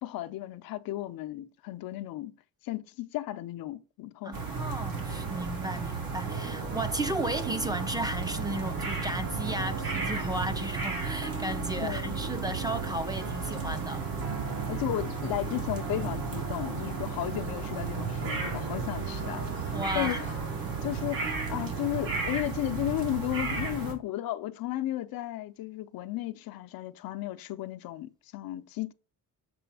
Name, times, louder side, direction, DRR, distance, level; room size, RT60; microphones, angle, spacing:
voice 1, 0.0-2.3 2.6-4.3 11.8-12.1 14.7-19.5 19.9-20.5 20.8-28.9, left 14 dB, 80° left, 0.6 m, -34 dB
voice 2, 4.2-14.1 19.7-20.2, right 1 dB, 10° right, 0.5 m, -34 dB
sound 1, 4.3-23.9, right 4 dB, 75° right, 2.1 m, -34 dB
sound 2, 6.3-22.2, right 4 dB, 40° right, 0.9 m, -40 dB
6.9 x 3.1 x 4.7 m
cardioid pair, 105°, 35 cm